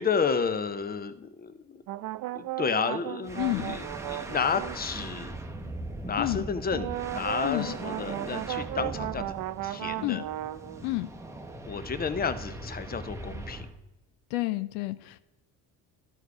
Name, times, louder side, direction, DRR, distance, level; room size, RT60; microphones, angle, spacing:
voice 1, 0.0-1.6 2.3-5.3 6.0-9.3 9.6-10.2 11.7-13.6, left 5 dB, 25° left, 12 dB, 0.7 m, -31 dB
sound 1, 1.9-5.2 6.7-10.9, right 15 dB, 55° right, 0.5 m, -36 dB
sound 2, 3.2-13.8, right 2 dB, 5° right, 0.9 m, -40 dB
voice 2, 3.4-3.8 6.2-6.4 7.4-7.7 10.0-10.2 10.8-11.1 14.3-15.2, left 19 dB, 90° left, 14 dB, 0.5 m, -30 dB
12.5 x 4.6 x 4.7 m, 0.98 s
supercardioid pair, 75°, 39 cm